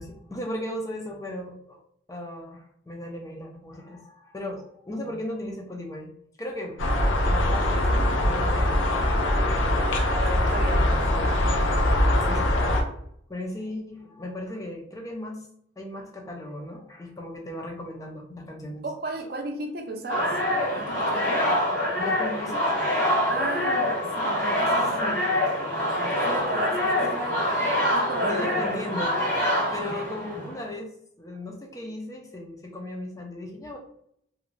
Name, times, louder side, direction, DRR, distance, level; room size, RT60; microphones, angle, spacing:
voice 1, 0.0-1.8 2.1-6.1 6.4-9.8 11.6-11.8 12.2-13.0 13.3-15.4 15.8-18.8 22.0-22.8 24.7-25.2 27.1-27.2 28.2-29.2 29.7-30.9 31.2-33.8, left 1 dB, 15° left, 1 dB, 0.3 m, -36 dB
sound 1, 6.8-12.8, left 1 dB, 90° left, 0.5 m, -22 dB
sound 2, 8.7-11.9, equal, 40° left, 0.7 m, -42 dB
voice 2, 9.9-11.3 18.8-20.3 20.7-21.5 23.3-25.0 25.4-25.5 25.8-27.6 27.9-28.5 29.9-30.0, right 2 dB, 50° right, 3 dB, 0.5 m, -34 dB
sound 3, 20.1-30.6, left 1 dB, 70° left, 1.2 m, -25 dB
2.4 x 2.1 x 3.0 m, 0.70 s
head